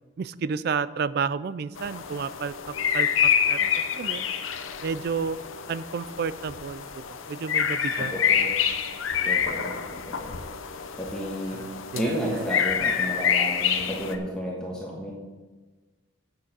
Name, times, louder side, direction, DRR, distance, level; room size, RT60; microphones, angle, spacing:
voice 1, 0.2-4.3 4.8-5.4 5.7-8.1 11.5-12.5, right 5 dB, 50° right, 16 dB, 0.3 m, -31 dB
sound 1, 1.8-14.2, left 7 dB, 85° left, 0.7 m, -27 dB
voice 2, 8.0-8.5 9.2-10.4 11.0-11.6 11.9-15.1, equal, 5° left, -4 dB, 1.2 m, -32 dB
8.3 x 6.5 x 7.4 m, 1.3 s
head